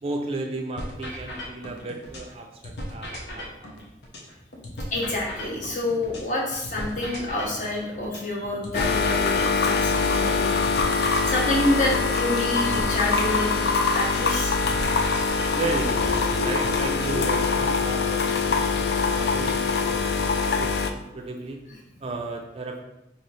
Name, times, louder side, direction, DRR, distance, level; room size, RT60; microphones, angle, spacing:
voice 1, 0.0-3.8 15.5-21.7 22.0-22.8, right 3 dB, 35° right, 2 dB, 0.3 m, -34 dB
sound 1, 0.8-2.3 2.6-6.3 6.6-10.3 10.6-14.3 14.6-16.8, equal, 85° left, 0.8 m, -37 dB
voice 2, 4.9-13.6 13.9-14.6, left 1 dB, 45° left, -3 dB, 0.9 m, -28 dB
sound 2, 5.1-5.2 5.6-5.7 6.0-6.1 6.5-6.6 7.0-7.1 7.5-7.6 8.0-8.1 8.4-8.5 8.9-9.0 9.4-9.5 9.9-10.0 10.4-10.5 10.8-10.9 11.3-11.4 11.8-11.9 12.3-12.4 12.8-12.9 13.2-13.3 13.7-13.8 14.2-14.3 14.7-14.8 15.2-15.3 15.6-15.7 16.1-16.2 16.6-16.7 17.1-17.2 17.6-17.7 18.0-18.1 18.5-18.6 19.0-19.1 19.5-19.6 20.0-20.1, right 1 dB, ahead, 1.1 m, -46 dB
sound 3, 8.7-20.9, left 4 dB, 65° left, 0.3 m, -23 dB
3.1 x 2.8 x 4.0 m, 0.89 s
head